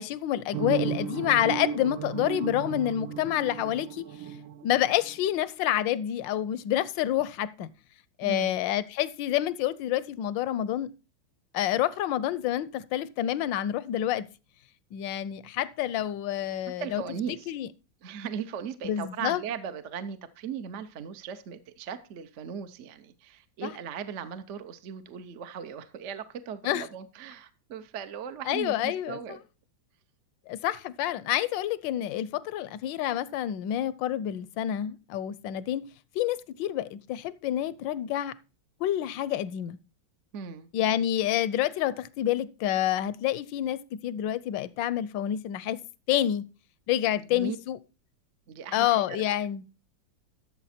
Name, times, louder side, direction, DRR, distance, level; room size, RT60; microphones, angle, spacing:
voice 1, 0.0-4.0 4.6-7.7 8.2-10.9 11.5-14.2 14.9-17.0 17.5-17.7 18.8-19.4 23.6-23.7 26.6-26.9 28.5-29.2 30.5-35.8 36.1-38.3 38.8-39.8 40.7-45.8 46.1-46.5 46.9-47.8 48.7-49.6, left 12 dB, 75° left, 1.3 m, -28 dB
sound 1, 0.5-5.3, right 9 dB, 80° right, 1.4 m, -35 dB
voice 2, 8.2-8.6 16.8-17.5 18.0-29.4 40.3-40.7 47.2-47.6 48.5-49.2, right 7 dB, 55° right, 0.8 m, -38 dB
13.0 x 6.9 x 4.3 m
omnidirectional pair, 2.1 m